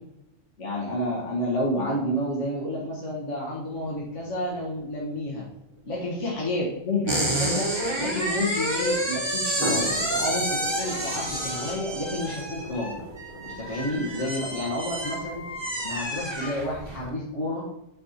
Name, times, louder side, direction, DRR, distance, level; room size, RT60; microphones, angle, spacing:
voice 1, 0.6-5.4 5.9-7.7 8.0-13.0 13.4-15.4 15.8-17.7, left 1 dB, 65° left, -4 dB, 1.9 m, -30 dB
sound 1, 3.7-8.3 9.4-16.1, right 1 dB, 85° right, 2.3 m, -39 dB
sound 2, 7.1-17.0, right 1 dB, 20° right, 1.4 m, -29 dB
8.4 x 4.4 x 4.2 m, 0.85 s
omnidirectional pair, 1.4 m